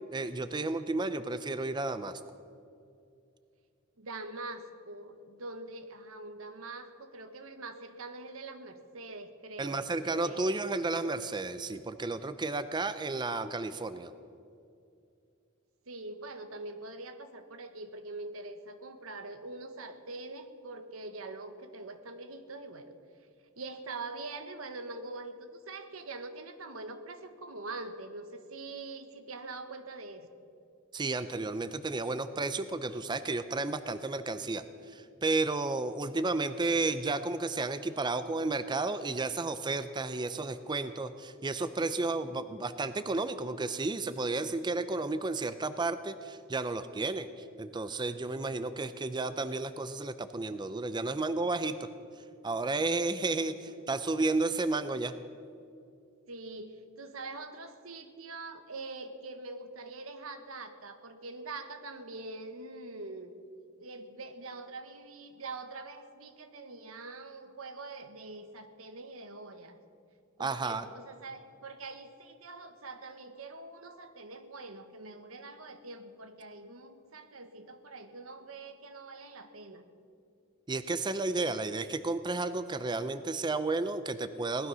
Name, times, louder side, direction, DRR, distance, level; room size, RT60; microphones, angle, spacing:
voice 1, 0.1-2.2 9.6-14.1 30.9-51.9 52.4-55.1 70.4-70.8 80.7-84.7, right 3 dB, 20° right, 11 dB, 0.5 m, -32 dB
voice 2, 4.0-10.5 15.9-23.0 23.6-30.3 56.3-63.3 63.8-69.8 70.4-79.8, right 3 dB, 85° right, 8 dB, 1.3 m, -44 dB
18.5 x 12.5 x 6.2 m, 2.5 s
head